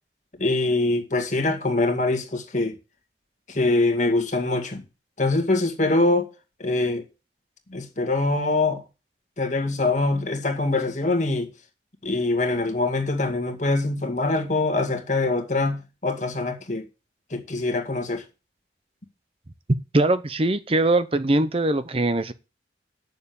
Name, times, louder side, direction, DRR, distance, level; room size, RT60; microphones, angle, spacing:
voice 1, 0.4-2.7 3.5-4.8 5.2-6.3 6.6-7.0 7.7-8.8 9.4-11.5 12.0-16.8 17.3-18.2, left 2 dB, 45° left, 2.0 m, -24 dB
voice 2, 19.9-22.3, right 2 dB, 30° right, 0.8 m, -21 dB
9.4 x 6.9 x 7.0 m
head